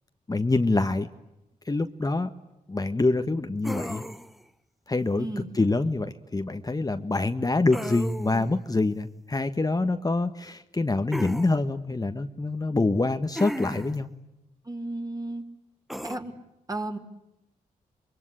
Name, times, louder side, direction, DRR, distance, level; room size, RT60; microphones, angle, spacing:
voice 1, 0.3-1.1 1.6-2.3 2.7-4.0 4.9-5.3 5.5-14.1, left 2 dB, 25° left, 7 dB, 1.4 m, -25 dB
sound 1, 3.6-4.4 7.7-8.5 11.1-11.5 13.4-14.0 15.9-16.2, equal, ahead, 1.1 m, -34 dB
voice 2, 5.2-5.5 14.6-15.4 16.0-16.3 16.7-17.0, right 2 dB, 25° right, 3 dB, 4.0 m, -33 dB
25.5 x 22.5 x 9.9 m, 0.92 s
cardioid pair, 60°, 15 cm